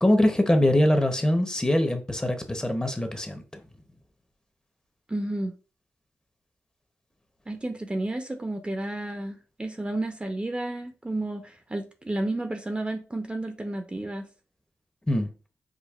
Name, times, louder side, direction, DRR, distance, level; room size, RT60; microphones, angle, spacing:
voice 1, 0.0-3.4 15.1-15.3, left 1 dB, 15° left, 0.8 m, -23 dB
voice 2, 5.1-5.5 7.5-14.3, right 1 dB, 20° right, 0.6 m, -31 dB
5.1 x 2.3 x 2.4 m
cardioid pair, 55°, 5 cm